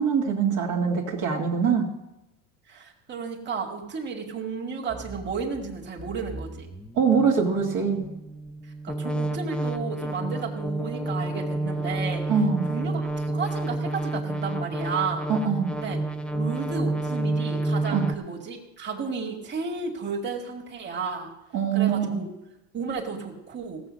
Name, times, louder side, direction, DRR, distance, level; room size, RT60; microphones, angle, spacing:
voice 1, 0.0-1.9 7.0-8.1 12.3-12.7 15.3-15.7 17.9-18.1 21.5-22.2, right 6 dB, 55° right, -1 dB, 2.1 m, -23 dB
voice 2, 2.7-6.7 8.8-12.3 12.7-15.3 15.7-16.0 16.3-21.3 21.7-22.3 22.7-23.8, right 5 dB, 30° right, 1 dB, 2.3 m, -33 dB
sound 1, 4.9-18.1, right 2 dB, 5° left, 0.7 m, -30 dB
16.5 x 7.0 x 6.4 m, 0.96 s
supercardioid pair, 105°, 36 cm